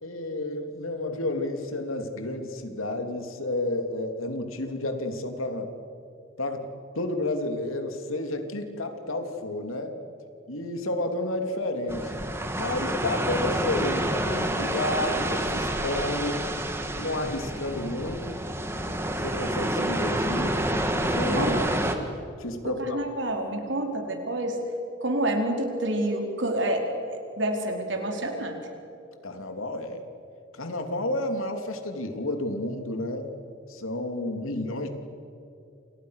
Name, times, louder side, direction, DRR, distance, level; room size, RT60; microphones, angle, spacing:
voice 1, 0.0-5.7 6.4-6.7 6.9-9.9 10.5-12.1 12.5-16.4 17.0-18.4 19.2-20.5 21.1-21.6 22.4-23.0 29.2-30.0 30.5-33.3 33.7-34.9, left 2 dB, 90° left, 6 dB, 3.2 m, -31 dB
sound 1, 11.9-21.9, right 1 dB, 10° right, 2.0 m, -28 dB
voice 2, 21.3-21.7 22.6-24.6 25.0-28.6, right 1 dB, 65° right, 3 dB, 4.5 m, -28 dB
29.5 x 29.0 x 6.7 m, 2.6 s
head